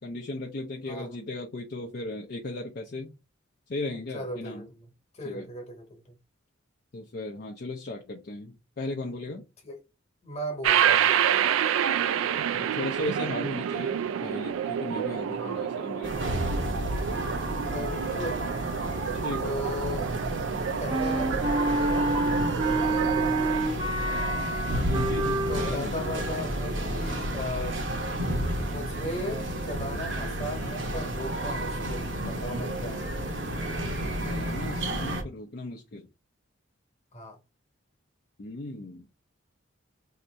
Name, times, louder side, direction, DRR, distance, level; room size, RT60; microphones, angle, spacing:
voice 1, 0.0-3.1 3.7-4.7 5.2-5.5 6.9-9.4 12.5-16.5 19.2-19.7 24.9-26.0 34.2-36.1 38.4-39.1, left 2 dB, 50° left, 0.5 m, -36 dB
voice 2, 4.1-4.8 5.1-6.0 9.6-9.8 10.2-11.2 15.3-15.8 17.5-18.4 19.4-20.1 20.8-22.1 25.5-27.8 28.6-33.1 37.1-37.4, left 1 dB, 35° left, 1.1 m, -37 dB
sound 1, 10.6-23.6, right 9 dB, 90° right, 0.3 m, -28 dB
sound 2, 16.0-35.2, right 1 dB, 65° right, 0.9 m, -31 dB
Wind instrument woodwind instrument, 20.9-25.8, right 2 dB, 25° right, 0.5 m, -28 dB
2.8 x 2.5 x 4.3 m
head